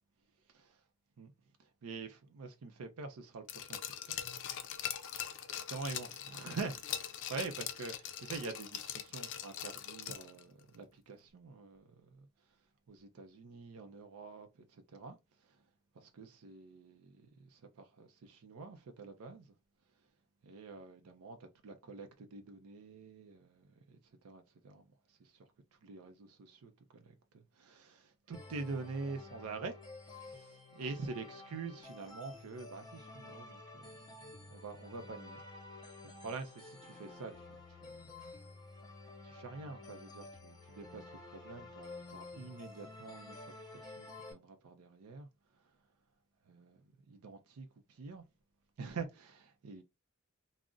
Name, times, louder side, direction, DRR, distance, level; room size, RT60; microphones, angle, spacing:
voice 1, 1.6-3.8 4.1-4.2 5.1-12.3 12.9-15.2 15.4-15.6 15.9-19.5 20.4-24.0 24.2-25.4 25.8-27.2 27.5-29.7 30.1-35.4 36.0-38.4 39.2-45.3 46.5-48.2 48.8-49.8, right 4 dB, 85° right, 0.5 m, -46 dB
Glass, 3.5-10.4 10.7-10.8, left 10 dB, 55° left, 0.4 m, -42 dB
sound 1, 28.3-44.3, left 2 dB, 20° left, 0.8 m, -51 dB
2.4 x 2.0 x 3.6 m
head